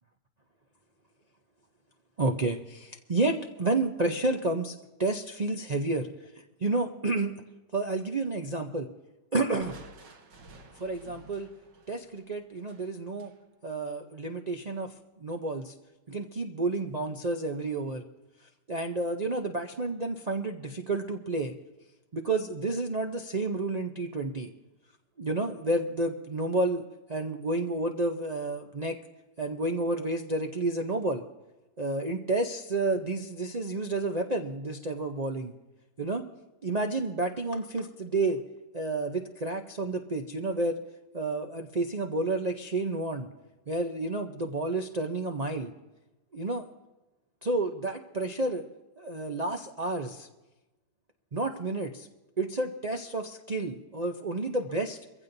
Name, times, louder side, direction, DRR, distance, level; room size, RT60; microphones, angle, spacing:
voice 1, 2.2-6.1 6.6-7.4 7.7-8.9 9.3-9.7 10.8-11.5 11.9-13.3 13.6-15.7 16.1-18.0 18.7-21.5 22.1-24.5 25.2-26.8 27.1-29.0 29.4-31.2 31.8-35.5 36.0-36.3 36.6-38.4 38.7-40.8 41.1-43.3 43.7-45.7 46.3-46.6 47.4-48.6 49.0-50.3 51.3-52.1 52.4-55.0, right 2 dB, 60° right, 4 dB, 0.4 m, -30 dB
Crushing, 9.6-13.4, right 3 dB, 80° right, 2.0 m, -51 dB
23.5 x 15.5 x 2.7 m, 1.1 s
omnidirectional pair, 1.9 m